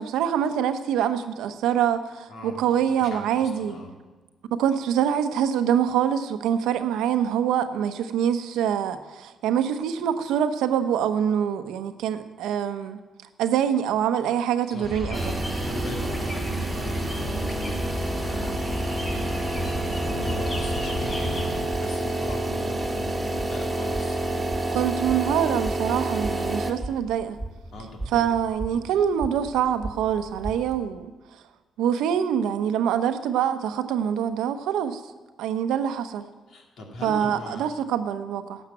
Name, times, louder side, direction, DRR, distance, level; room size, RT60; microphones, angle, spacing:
voice 1, 0.0-3.8 4.6-13.0 13.4-15.4 24.7-27.4 28.1-31.1 31.8-35.0 35.4-36.3 37.0-38.6, right 9 dB, 90° right, 9 dB, 0.8 m, -25 dB
voice 2, 2.3-2.6 3.0-3.9 14.7-24.8 27.7-28.2 28.7-29.0 36.5-37.6, left 2 dB, 70° left, 0 dB, 2.7 m, -40 dB
sound 1, 14.8-21.6, left 1 dB, 30° left, 3.9 m, -32 dB
sound 2, 15.1-26.7, right 2 dB, 20° right, 1.5 m, -29 dB
sound 3, 19.8-30.8, right 1 dB, ahead, 1.8 m, -39 dB
12.0 x 7.2 x 8.9 m, 1.3 s
cardioid pair, 90°, 0 cm